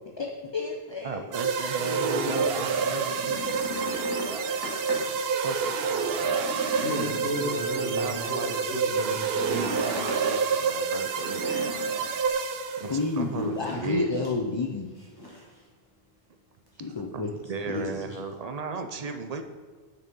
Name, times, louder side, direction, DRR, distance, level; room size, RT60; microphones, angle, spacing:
voice 1, 0.2-1.5 1.8-3.0 12.9-14.9 16.8-17.3 17.7-18.2, left 3 dB, 40° left, 1 dB, 0.4 m, -31 dB
voice 2, 1.0-3.4 4.9-6.5 8.0-9.2 9.5-11.5 12.8-14.2 16.9-19.4, right 5 dB, 45° right, 6 dB, 0.6 m, -36 dB
sound 1, 1.3-13.1, right 5 dB, 70° right, 0.8 m, -28 dB
sound 2, 3.1-5.2 5.6-5.7 6.1-8.0 9.2-10.3 11.2-12.1 13.3-14.0 14.2-14.4 14.9-15.5 16.7-16.8, left 1 dB, 20° left, 2.0 m, -38 dB
voice 3, 6.8-9.5, equal, 75° left, -2 dB, 1.5 m, -33 dB
6.3 x 6.1 x 5.3 m, 1.5 s
omnidirectional pair, 1.1 m